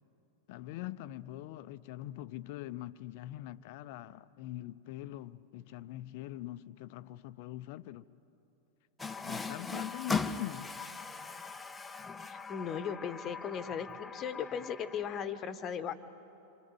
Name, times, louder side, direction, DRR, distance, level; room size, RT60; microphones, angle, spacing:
voice 1, 0.5-8.1 9.2-10.7, left 14 dB, 50° left, 0.6 m, -43 dB
Water tap faucet, 9.0-15.3, left 4 dB, 10° left, 0.7 m, -39 dB
voice 2, 12.3-15.9, left 7 dB, 30° left, 1.1 m, -37 dB
27.0 x 24.5 x 7.9 m
figure-of-eight pair, 90°, 0 cm